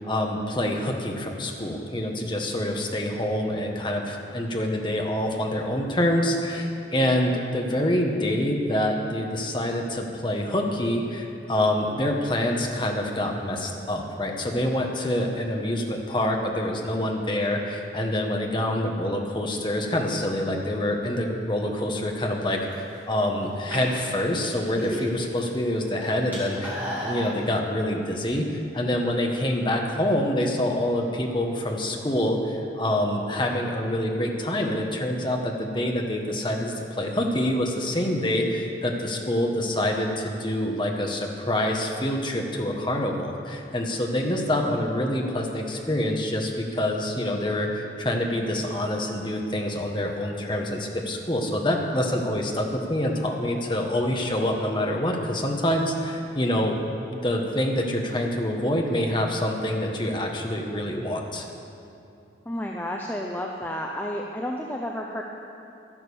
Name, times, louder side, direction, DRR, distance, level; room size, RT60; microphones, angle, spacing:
voice 1, 0.0-56.8 57.1-61.5, left 1 dB, 25° left, 1 dB, 1.3 m, -26 dB
sound 1, 22.5-23.0 23.6-25.4 25.7-27.4, right 1 dB, 10° right, 2.7 m, -34 dB
voice 2, 62.5-65.2, left 1 dB, 10° left, 0 dB, 0.6 m, -31 dB
12.0 x 11.0 x 7.0 m, 2.8 s
head